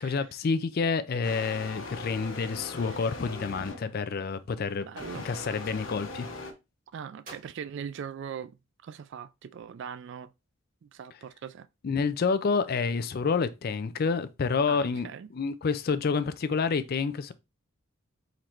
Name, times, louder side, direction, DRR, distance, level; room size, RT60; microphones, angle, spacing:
voice 1, 0.0-4.9 5.1-6.3 11.8-17.3, left 5 dB, 45° left, 0.4 m, -28 dB
sound 1, 1.2-4.0 4.9-6.5, left 2 dB, 65° left, 1.1 m, -40 dB
voice 2, 4.8-5.3 6.9-10.3 10.8-11.7 14.7-15.3, right 7 dB, 60° right, 0.3 m, -41 dB
Gunshot gunfire, 5.3-5.8 7.2-8.7, right 2 dB, 40° right, 2.1 m, -52 dB
3.9 x 3.1 x 4.4 m
head